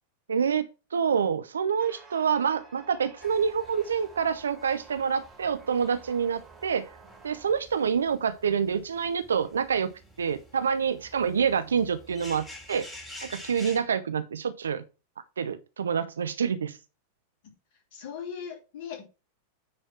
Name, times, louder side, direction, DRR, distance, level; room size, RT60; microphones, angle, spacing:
voice 1, 0.3-6.9 7.2-9.9 10.2-12.9 13.2-14.8 15.4-16.8, right 7 dB, 70° right, 0.6 m, -27 dB
sound 1, 1.8-7.5, right 4 dB, 15° right, 2.7 m, -52 dB
sound 2, 3.2-13.8, left 1 dB, 10° left, 3.1 m, -49 dB
voice 2, 17.9-19.0, left 7 dB, 50° left, 3.0 m, -38 dB
9.5 x 4.3 x 4.5 m
figure-of-eight pair, 90°, 0 cm